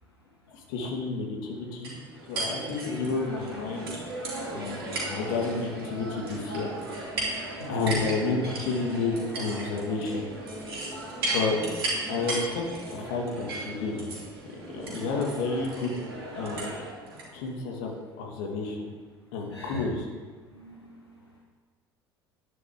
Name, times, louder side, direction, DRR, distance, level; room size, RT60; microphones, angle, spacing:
voice 1, 0.5-2.0 2.3-3.9 4.5-6.7 7.7-10.2 11.3-11.6 12.1-12.6 12.9-14.1 14.7-15.9 16.3-16.7 17.3-18.9 19.3-20.1, left 4 dB, 60° left, 0 dB, 2.4 m, -30 dB
sound 1, 1.8-17.3, right 2 dB, 70° right, 3.4 m, -35 dB
voice 2, 7.6-8.0 19.5-19.8 20.5-21.2, left 4 dB, 85° left, -3 dB, 1.2 m, -39 dB
11.0 x 11.0 x 3.8 m, 1.5 s
figure-of-eight pair, 65°, 13 cm